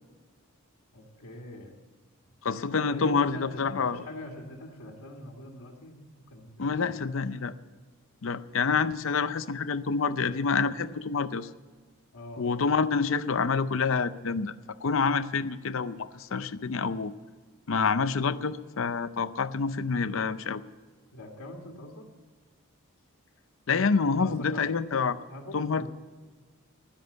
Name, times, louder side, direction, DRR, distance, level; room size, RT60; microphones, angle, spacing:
voice 1, 0.9-1.7 2.7-6.0 6.3-7.3 12.1-12.5 21.1-22.1 24.2-24.7 25.3-25.9, left 1 dB, 85° left, 1 dB, 1.9 m, -43 dB
voice 2, 2.4-4.1 6.6-7.5 8.2-11.5 12.4-14.5 14.8-17.1 17.7-20.6 23.7-25.2 25.5-25.9, left 5 dB, 65° left, 13 dB, 0.6 m, -27 dB
12.0 x 10.5 x 8.0 m, 1.4 s
head